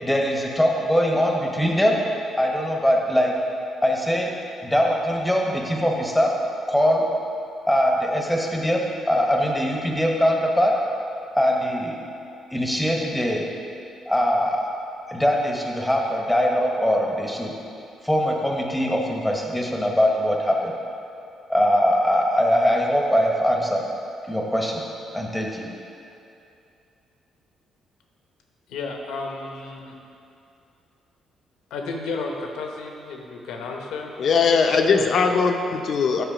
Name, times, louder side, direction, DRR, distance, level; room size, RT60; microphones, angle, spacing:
voice 1, 0.0-2.0 2.4-3.3 3.8-4.3 4.6-6.3 6.7-7.0 7.7-8.8 9.1-10.7 11.4-12.0 12.5-13.4 14.1-14.6 15.1-17.5 18.0-20.7 21.5-23.8 24.3-24.8 25.1-25.7, equal, 5° left, 0 dB, 1.1 m, -22 dB
voice 2, 28.7-29.9 31.7-34.1 34.9-35.4, left 3 dB, 85° left, 1 dB, 0.9 m, -33 dB
voice 3, 34.2-36.2, left 5 dB, 60° left, 4 dB, 0.6 m, -20 dB
8.0 x 4.9 x 4.9 m, 2.7 s
cardioid pair, 90°, 0 cm